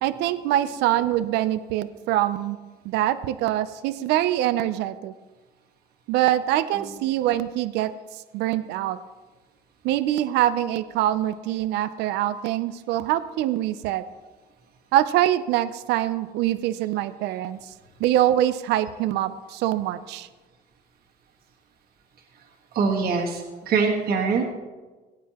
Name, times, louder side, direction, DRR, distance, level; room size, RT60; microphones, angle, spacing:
voice 1, 0.0-2.6 2.8-5.1 6.1-7.9 8.3-9.0 9.8-14.0 14.9-17.6 18.0-20.3, right 13 dB, 90° right, 13 dB, 0.5 m, -24 dB
voice 2, 22.7-24.4, right 5 dB, 65° right, 0 dB, 1.5 m, -23 dB
17.0 x 9.3 x 2.9 m, 1.3 s
cardioid pair, 110°, 17 cm